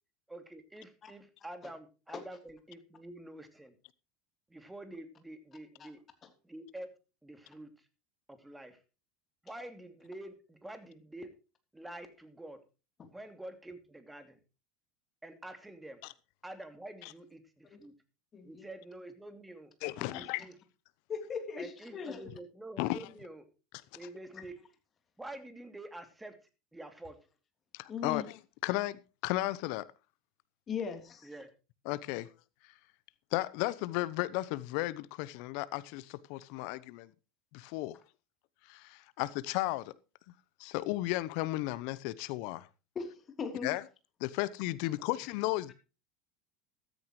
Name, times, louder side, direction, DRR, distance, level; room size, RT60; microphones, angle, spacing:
voice 1, 0.3-3.8 4.5-6.0 6.4-7.0 7.2-7.9 8.3-8.8 9.4-11.3 11.7-12.6 13.1-14.4 15.2-16.0 16.4-18.0 18.4-19.7 20.1-20.6 21.6-23.5 23.9-24.6 25.2-26.4 26.7-27.3 31.2-31.5 45.1-45.2, right 1 dB, 10° right, 2.7 m, -47 dB
voice 2, 18.3-18.7 20.0-20.2 21.1-22.3 27.9-28.3 30.7-31.2 42.9-43.7, left 6 dB, 35° left, 3.2 m, -39 dB
voice 3, 19.8-20.4 22.8-23.0 27.7-29.9 31.9-32.3 33.3-37.1 37.5-37.9 38.7-39.9 40.6-42.7 43.6-43.8 44.2-45.7, left 18 dB, 60° left, 0.8 m, -34 dB
14.5 x 13.5 x 3.1 m
hypercardioid pair, 80°, 0 cm